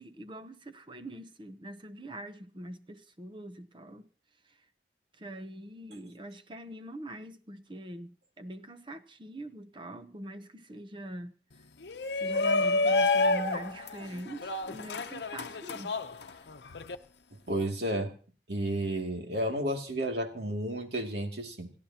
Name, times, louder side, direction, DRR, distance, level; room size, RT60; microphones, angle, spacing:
voice 1, 0.0-4.0 5.2-11.3 12.2-16.0 16.3-16.4, right 1 dB, 25° right, 0.8 m, -43 dB
Shout, 11.8-16.9, left 3 dB, 80° left, 0.8 m, -29 dB
voice 2, 17.5-18.1 18.5-21.7, right 1 dB, 75° right, 2.5 m, -32 dB
29.0 x 12.5 x 2.9 m
head